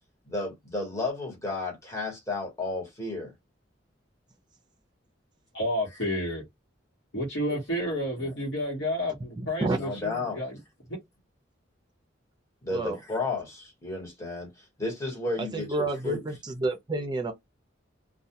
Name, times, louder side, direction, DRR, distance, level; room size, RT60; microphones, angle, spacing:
voice 1, 0.3-3.3 7.5-7.6 8.2-8.3 9.8-10.4 12.6-14.5 14.8-16.2, left 3 dB, 15° left, 1.1 m, -33 dB
voice 2, 5.5-6.5 7.1-10.6 10.9-11.0, equal, 75° left, 1.1 m, -30 dB
voice 3, 9.4-9.8 12.7-13.0 15.4-17.3, right 2 dB, 25° right, 0.5 m, -30 dB
2.2 x 2.2 x 2.8 m
head